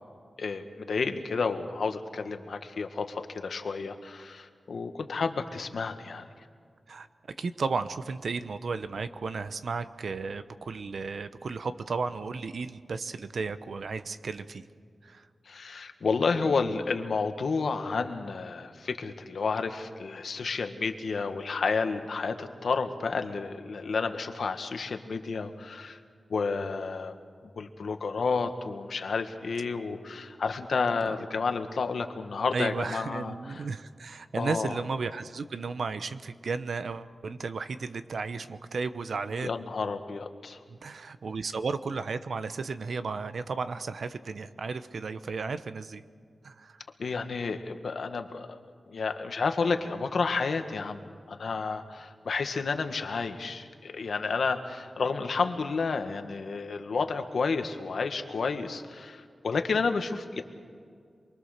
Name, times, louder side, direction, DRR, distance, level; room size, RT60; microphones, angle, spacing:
voice 1, 0.4-6.3 15.4-26.0 26.3-27.1 27.5-33.7 34.4-34.7 39.4-40.6 47.0-48.5 48.9-51.0 51.3-60.4, left 4 dB, 75° left, 7 dB, 1.6 m, -31 dB
voice 2, 7.4-14.6 15.0-15.3 31.1-31.2 32.5-39.5 40.7-46.0 46.4-46.8, right 4 dB, 70° right, 11 dB, 1.0 m, -34 dB
28.0 x 22.5 x 6.7 m, 2.2 s
wide cardioid pair, 140°, 0 cm